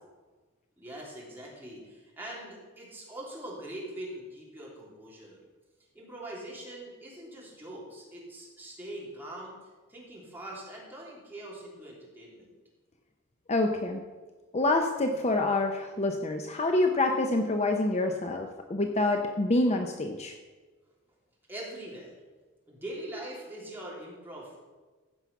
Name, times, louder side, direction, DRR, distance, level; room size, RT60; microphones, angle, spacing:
voice 1, 0.8-5.4 5.9-9.5 9.9-12.5 21.5-22.1 22.7-24.6, right 1 dB, 10° right, -5 dB, 3.1 m, -42 dB
voice 2, 13.5-14.0 14.5-20.3, left 2 dB, 30° left, 4 dB, 0.6 m, -27 dB
15.0 x 5.6 x 5.8 m, 1.3 s
head